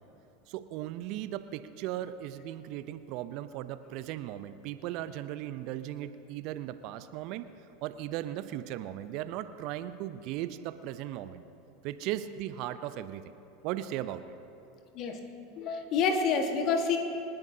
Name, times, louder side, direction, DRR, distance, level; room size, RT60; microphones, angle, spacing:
voice 1, 0.5-7.5 7.8-11.4 11.8-13.3 13.6-14.2, right 12 dB, 55° right, 12 dB, 0.6 m, -37 dB
voice 2, 15.5-17.0, left 5 dB, 50° left, 5 dB, 1.5 m, -28 dB
28.0 x 10.5 x 2.8 m, 2.8 s
hypercardioid pair, 80°, 0 cm